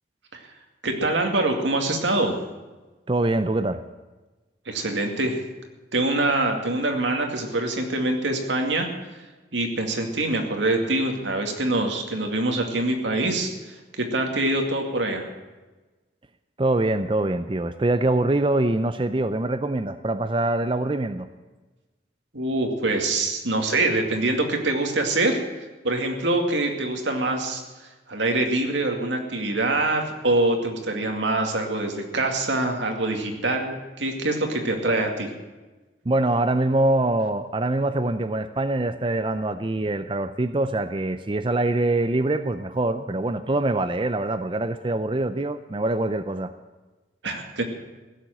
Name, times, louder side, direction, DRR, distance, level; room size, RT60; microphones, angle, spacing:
voice 1, 0.8-2.4 4.7-5.4 5.9-8.9 9.5-15.3 22.3-25.4 25.8-27.6 28.1-35.3 47.2-47.6, right 2 dB, 85° right, 3 dB, 2.3 m, -24 dB
voice 2, 3.1-3.8 16.6-21.3 36.1-46.5, right 2 dB, 25° right, 10 dB, 0.5 m, -24 dB
16.0 x 7.6 x 9.1 m, 1.2 s
head